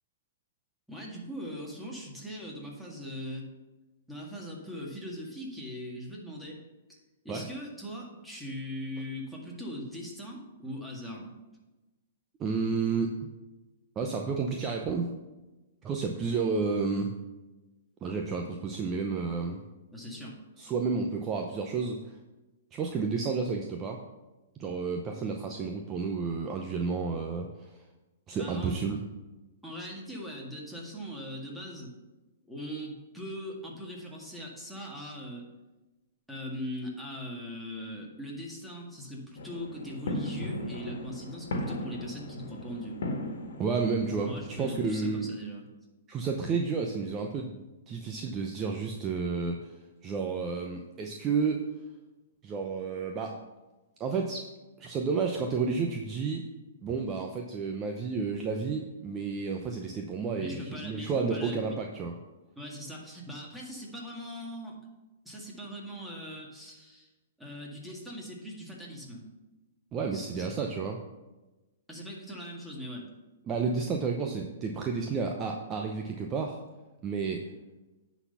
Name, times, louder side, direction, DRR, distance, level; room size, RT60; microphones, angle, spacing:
voice 1, 0.9-3.5 4.1-6.6 6.9-7.0 7.2-11.3 19.9-20.4 28.4-28.8 29.6-31.9 32.5-35.5 36.3-43.0 44.3-45.7 60.4-61.7 62.6-64.8 65.3-67.1 67.4-69.3 70.1-70.6 71.9-73.1, equal, ahead, -3 dB, 1.9 m, -40 dB
voice 2, 12.4-13.1 14.0-15.1 15.8-17.1 18.0-19.6 20.6-22.1 22.7-24.0 24.6-27.8 28.3-29.0 43.6-45.3 46.1-47.6 47.9-49.7 50.0-51.7 52.4-53.4 54.0-54.5 54.8-56.4 56.8-62.1 69.9-71.0 73.5-76.6 77.0-77.4, right 5 dB, 25° right, 3 dB, 0.7 m, -31 dB
sound 1, 39.4-45.0, left 1 dB, 70° left, 1.5 m, -37 dB
9.7 x 4.2 x 5.6 m, 1.1 s
hypercardioid pair, 125°, 0 cm